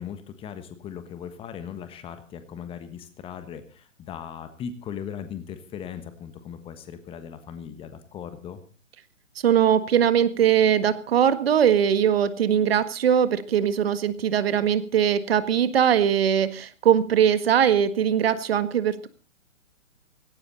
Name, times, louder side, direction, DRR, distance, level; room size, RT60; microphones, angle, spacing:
voice 1, 0.0-8.6, left 8 dB, 15° left, 10 dB, 1.3 m, -38 dB
voice 2, 9.4-19.1, right 9 dB, 50° right, 13 dB, 1.7 m, -21 dB
17.5 x 17.0 x 4.2 m, 0.36 s
figure-of-eight pair, 125°, 39 cm